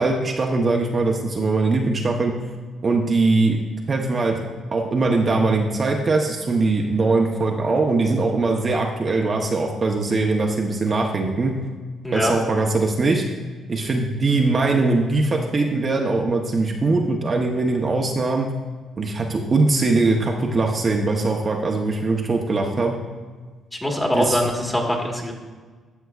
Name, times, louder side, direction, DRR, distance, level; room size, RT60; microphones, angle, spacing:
voice 1, 0.0-2.3 2.8-3.6 3.9-4.4 4.7-11.5 12.1-13.2 13.7-18.5 19.0-22.9 24.1-24.4, right 3 dB, 35° right, 1 dB, 0.7 m, -21 dB
voice 2, 23.8-25.3, equal, 10° left, 0 dB, 1.4 m, -23 dB
12.5 x 5.6 x 2.4 m, 1.4 s
cardioid pair, 90°, 0 cm